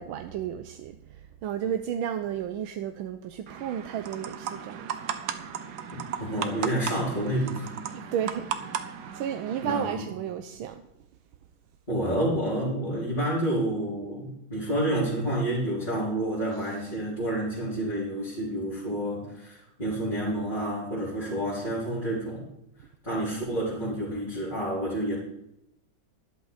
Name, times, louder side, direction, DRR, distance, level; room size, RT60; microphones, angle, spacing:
voice 1, 0.0-4.9 7.9-10.8, right 9 dB, 90° right, 1.5 m, -33 dB
sound 1, 3.5-9.9, right 8 dB, 60° right, 1.3 m, -36 dB
voice 2, 6.2-7.7 9.6-10.0 11.9-22.4 23.0-25.2, right 1 dB, 20° left, 4.4 m, -29 dB
12.5 x 11.5 x 4.1 m
omnidirectional pair, 2.2 m